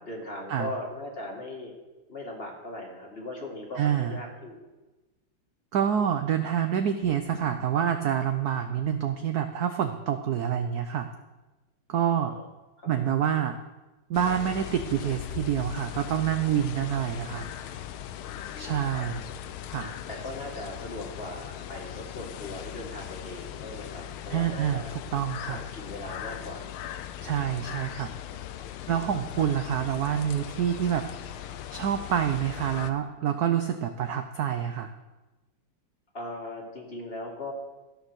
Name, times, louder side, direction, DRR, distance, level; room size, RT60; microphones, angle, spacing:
voice 1, 0.0-1.7 2.1-4.6 12.1-12.5 12.8-13.0 18.2-19.1 20.1-25.0 25.5-26.7 28.8-29.4 36.1-37.5, left 1 dB, 30° left, 0 dB, 2.2 m, -39 dB
voice 2, 3.8-4.2 5.7-11.1 11.9-12.4 12.9-13.6 14.1-17.5 18.6-19.2 19.7-19.9 24.3-24.8 25.1-25.6 27.2-28.1 28.9-31.1 31.4-34.9, right 9 dB, 70° right, 8 dB, 0.9 m, -27 dB
sound 1, 14.1-32.9, left 11 dB, 90° left, 1.5 m, -39 dB
15.0 x 6.7 x 6.3 m, 1.1 s
omnidirectional pair, 2.3 m